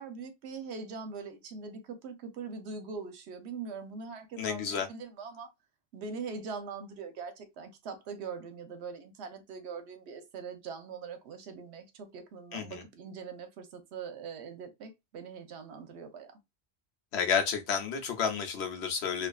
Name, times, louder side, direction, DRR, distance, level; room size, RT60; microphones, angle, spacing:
voice 1, 0.0-5.5 5.9-16.4, right 5 dB, 80° right, 0.9 m, -42 dB
voice 2, 4.4-4.9 12.5-12.8 17.1-19.3, left 7 dB, 80° left, 0.9 m, -31 dB
2.5 x 2.3 x 2.2 m
omnidirectional pair, 1.1 m